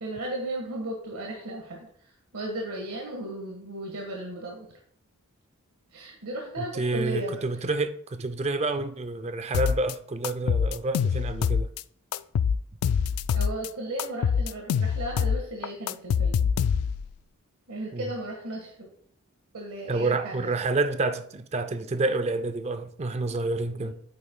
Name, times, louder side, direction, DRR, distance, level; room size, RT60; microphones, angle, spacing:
voice 1, 0.0-1.9 2.3-4.7 5.9-7.4 13.3-16.5 17.7-18.9 19.5-20.5 23.8-23.9, right 1 dB, 80° right, 1.5 m, -35 dB
voice 2, 6.6-11.7 17.9-18.1 19.9-23.9, right 2 dB, 30° right, 0.4 m, -28 dB
sound 1, 9.5-9.9 10.2-11.8 12.1-13.7 14.0-17.1, left 6 dB, 85° left, 0.3 m, -25 dB
8.7 x 8.5 x 2.2 m
head